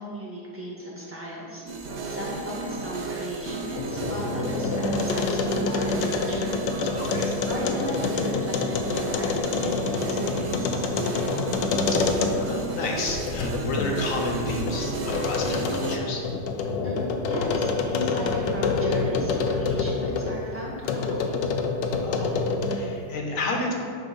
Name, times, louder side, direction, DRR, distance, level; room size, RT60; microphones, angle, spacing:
voice 1, 0.0-1.6 2.0-6.5 7.5-11.5 16.8-21.3, equal, 10° right, -7 dB, 1.5 m, -36 dB
sound 1, 1.7-16.0, right 3 dB, 55° right, 0.7 m, -33 dB
sound 2, 3.6-12.6 13.1-20.4 20.8-23.0, left 4 dB, 90° left, 1.3 m, -27 dB
voice 2, 6.9-7.3 11.9-12.1 12.3-16.3 22.0-22.4 22.6-23.7, left 2 dB, 50° left, 0 dB, 1.3 m, -31 dB
9.6 x 3.4 x 5.5 m, 2.4 s
omnidirectional pair, 1.9 m